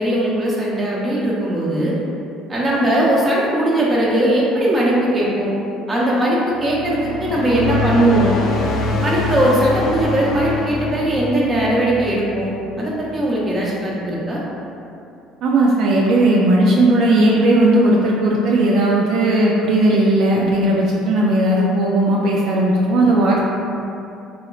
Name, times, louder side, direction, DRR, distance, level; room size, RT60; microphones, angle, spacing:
voice 1, 0.0-1.9 2.5-5.5 5.9-8.4 9.0-12.5 12.8-14.4, right 1 dB, 25° right, -5 dB, 0.8 m, -19 dB
sound 1, 6.5-13.2, left 3 dB, 65° left, 0.4 m, -25 dB
voice 2, 15.4-23.5, right 1 dB, 65° right, -3 dB, 0.3 m, -16 dB
2.9 x 2.9 x 2.3 m, 2.6 s
supercardioid pair, 95°, 0 cm